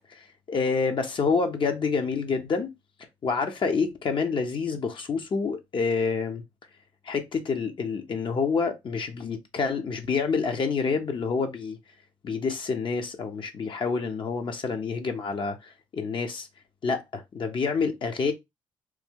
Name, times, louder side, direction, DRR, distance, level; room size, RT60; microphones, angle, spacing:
voice 1, 0.1-2.7 3.2-6.4 7.1-11.8 12.2-16.5 16.8-18.3, left 5 dB, 50° left, 0.8 m, -28 dB
3.1 x 2.2 x 3.6 m
supercardioid pair, 55°, 10 cm